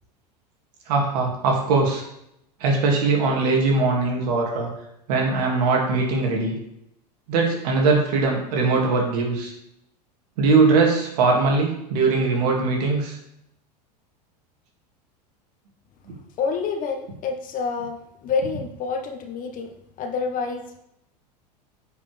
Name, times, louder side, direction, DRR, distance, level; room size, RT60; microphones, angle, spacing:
voice 1, 0.9-2.0 2.6-4.7 5.1-6.6 7.3-9.5 10.4-13.2, right 3 dB, 70° right, 0 dB, 2.4 m, -21 dB
voice 2, 16.4-20.8, left 5 dB, 40° left, 6 dB, 1.2 m, -28 dB
9.4 x 5.2 x 3.4 m, 0.79 s
hypercardioid pair, 95°, 21 cm